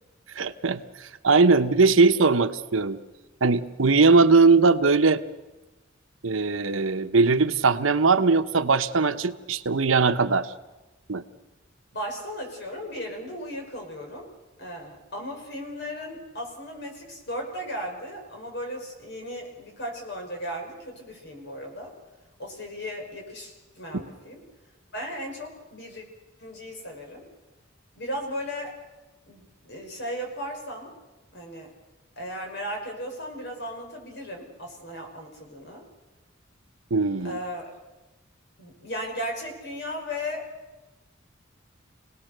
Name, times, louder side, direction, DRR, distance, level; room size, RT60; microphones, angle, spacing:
voice 1, 0.3-3.0 3.4-5.2 6.2-10.5 11.1-11.2 23.9-24.0 36.9-37.4, right 4 dB, 80° right, 10 dB, 1.0 m, -20 dB
voice 2, 11.9-14.3 14.6-21.9 22.4-24.4 24.9-26.0 26.4-27.3 28.0-28.8 29.3-30.9 31.3-31.7 32.2-35.8 37.2-37.7 38.6-40.5, equal, 60° left, 2 dB, 5.6 m, -36 dB
28.0 x 18.5 x 6.7 m, 1.1 s
head